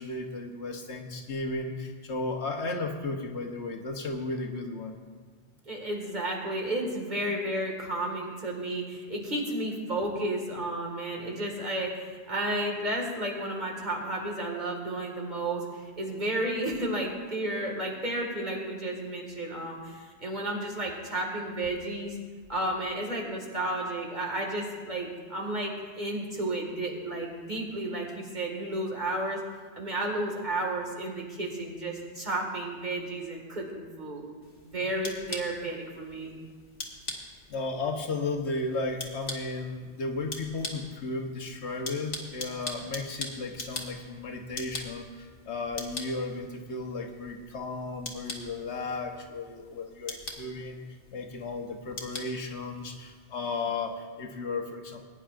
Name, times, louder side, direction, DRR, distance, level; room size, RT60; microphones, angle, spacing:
voice 1, 0.0-5.0 37.5-50.8 51.1-55.0, left 3 dB, 80° left, 3 dB, 1.3 m, -34 dB
voice 2, 5.7-22.2 22.5-29.4 29.7-34.2 34.6-36.3, right 1 dB, 45° right, -1 dB, 2.1 m, -32 dB
sound 1, 34.4-53.2, left 2 dB, 55° left, 1.5 m, -43 dB
20.5 x 9.8 x 2.5 m, 1.5 s
omnidirectional pair, 1.1 m